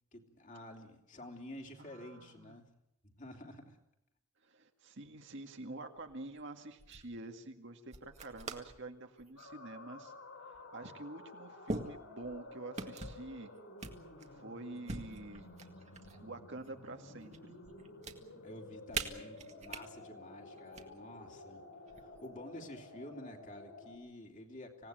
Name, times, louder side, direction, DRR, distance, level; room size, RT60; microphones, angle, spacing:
voice 1, 0.1-2.7 3.0-3.8 18.4-21.6 21.9-24.9, left 1 dB, 35° left, 2 dB, 3.3 m, -50 dB
voice 2, 1.8-2.6 4.4-10.1 10.7-13.5 14.3-15.5 16.2-17.6, right 2 dB, 55° right, 5 dB, 2.1 m, -47 dB
sound 1, 6.0-6.4 6.8-7.1 7.9-8.8 9.2-9.5 10.5-10.6 11.7-12.4 12.8-13.3 13.8-14.4 14.9-16.2 16.6-17.4 17.7-18.1 18.9-19.8 20.6-20.8 21.9-22.4, right 3 dB, 30° right, 1.9 m, -42 dB
sound 2, 9.4-24.0, left 2 dB, 75° left, 6.7 m, -52 dB
26.0 x 18.0 x 9.3 m, 0.83 s
head